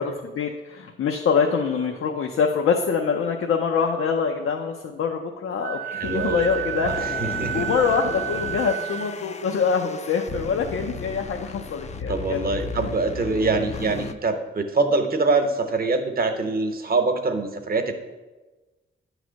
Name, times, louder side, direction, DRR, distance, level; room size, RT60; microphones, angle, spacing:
voice 1, 0.0-6.9 7.2-12.5 12.7-12.9, left 6 dB, 90° left, 2 dB, 0.6 m, -25 dB
Wind instrument woodwind instrument, 5.6-9.1, right 11 dB, 65° right, 0.5 m, -31 dB
sound 1, 6.0-14.1, left 5 dB, 35° left, 0.4 m, -35 dB
voice 2, 6.0-7.7 12.1-17.9, right 3 dB, 45° right, 6 dB, 0.9 m, -24 dB
9.3 x 3.2 x 6.3 m, 1.2 s
cardioid pair, 90°, 21 cm